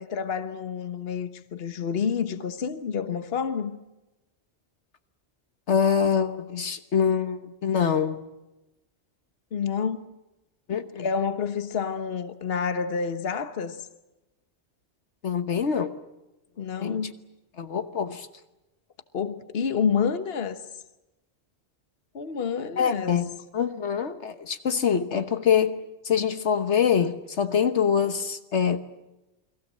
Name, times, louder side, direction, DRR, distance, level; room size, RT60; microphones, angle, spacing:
voice 1, 0.0-3.8 9.5-10.1 11.0-13.8 16.6-17.1 19.1-20.6 22.1-23.2, left 6 dB, 60° left, 1.4 m, -28 dB
voice 2, 5.7-8.2 10.7-11.1 15.2-15.9 16.8-17.0 17.6-18.3 22.8-28.8, left 7 dB, 75° left, 1.5 m, -25 dB
29.5 x 22.0 x 7.5 m
omnidirectional pair, 1.2 m